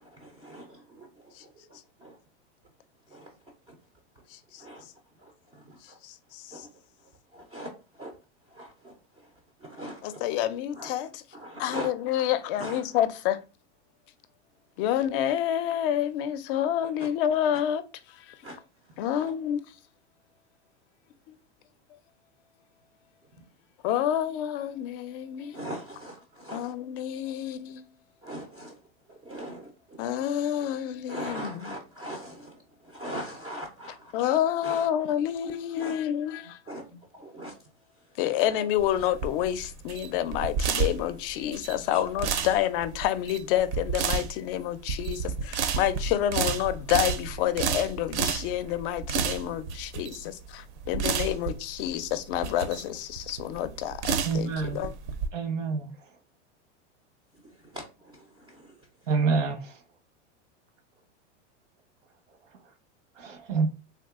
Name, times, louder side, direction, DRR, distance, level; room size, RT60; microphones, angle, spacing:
voice 1, 0.0-1.5 2.0-2.2 3.1-3.3 4.6-4.9 5.2-6.0 6.5-6.7 7.3-7.7 7.9-8.1 8.5-8.9 9.6-10.2 10.7-10.9 11.3-11.9 12.6-12.8 17.0-17.1 18.4-18.6 19.1-19.3 25.5-26.7 28.2-28.7 29.1-30.0 31.1-34.4 34.6-34.9 35.8-36.0 36.7-37.5 41.9-42.0 42.3-42.5 57.4-58.7, right 1 dB, 15° right, 0.3 m, -41 dB
voice 2, 4.3-4.6 6.0-6.7 10.0-11.2 11.6-13.4 14.8-17.8 18.1-18.4 19.0-19.6 21.3-21.4 23.8-25.6 26.5-27.8 30.0-31.7 34.1-36.6 38.2-50.1 50.9-54.9, left 11 dB, 50° left, 0.4 m, -28 dB
sound 1, 38.8-55.3, right 6 dB, 65° right, 0.6 m, -31 dB
voice 3, 54.2-54.8 55.3-55.9 59.1-59.6 63.2-63.7, right 4 dB, 85° right, 1.0 m, -27 dB
3.6 x 2.6 x 2.3 m
supercardioid pair, 130°, 36 cm